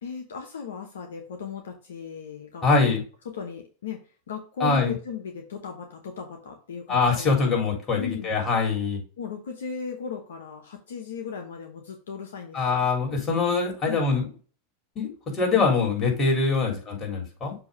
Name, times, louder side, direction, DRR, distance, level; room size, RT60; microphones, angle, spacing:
voice 1, 0.0-2.9 3.2-7.3 8.0-8.3 9.2-12.9 13.9-14.1 16.6-16.8, left 6 dB, 80° left, 4 dB, 1.0 m, -37 dB
voice 2, 2.6-3.0 4.6-4.9 6.9-9.0 12.5-14.3 15.0-17.5, left 4 dB, 30° left, 0 dB, 3.5 m, -23 dB
6.9 x 3.0 x 5.4 m, 0.37 s
hypercardioid pair, 100°, 0 cm